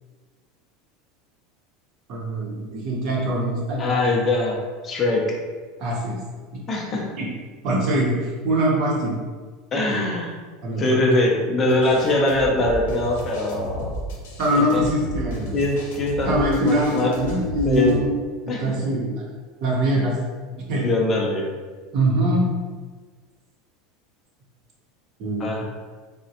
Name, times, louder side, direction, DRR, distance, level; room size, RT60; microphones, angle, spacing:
voice 1, 2.1-4.1 5.8-6.2 6.5-6.6 7.2-7.3 7.6-9.2 9.9-10.0 10.6-10.8 11.6-11.7 14.4-15.6 16.2-18.1 18.5-19.2 19.6-20.1 20.7-20.8 21.9-22.5 25.2-25.6, right 1 dB, 45° right, -3 dB, 0.8 m, -23 dB
voice 2, 3.8-4.6 4.8-5.4 6.7-7.1 9.7-10.3 10.8-14.0 14.5-14.8 15.5-17.1 17.6-18.0 18.5-18.8 20.0-20.1 20.5-21.5 25.4-25.7, left 2 dB, 20° left, -1 dB, 0.5 m, -22 dB
sound 1, 11.7-18.0, equal, 80° left, 0.6 m, -33 dB
3.6 x 2.1 x 2.8 m, 1.4 s
supercardioid pair, 160°, 0 cm